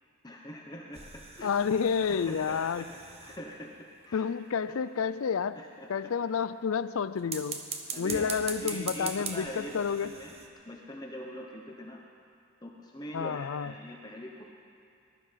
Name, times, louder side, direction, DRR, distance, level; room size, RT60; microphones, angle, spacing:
voice 1, 0.2-1.0 1.4-1.5 2.1-3.8 4.0-4.3 5.6-5.9 7.9-10.3 10.7-12.0 12.6-14.5, equal, 20° left, -1 dB, 0.8 m, -43 dB
sound 1, 0.9-3.8 7.2-10.5, right 5 dB, 30° right, 1.0 m, -41 dB
voice 2, 1.4-2.8 4.1-5.6 5.9-7.6 8.0-10.1 13.1-13.7, left 6 dB, 75° left, 14 dB, 0.4 m, -30 dB
20.0 x 11.5 x 5.7 m, 2.4 s
head